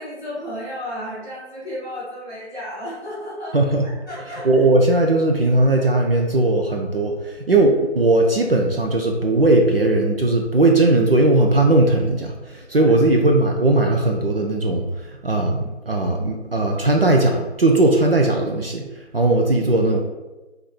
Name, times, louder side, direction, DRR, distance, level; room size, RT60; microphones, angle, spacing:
voice 1, 0.0-3.6 3.8-4.6 12.8-12.9, equal, ahead, -12 dB, 1.3 m, -33 dB
voice 2, 3.5-3.9 4.4-18.9 19.1-20.0, right 2 dB, 55° right, 2 dB, 0.6 m, -18 dB
4.3 x 2.6 x 4.2 m, 1.1 s
figure-of-eight pair, 175°, 34 cm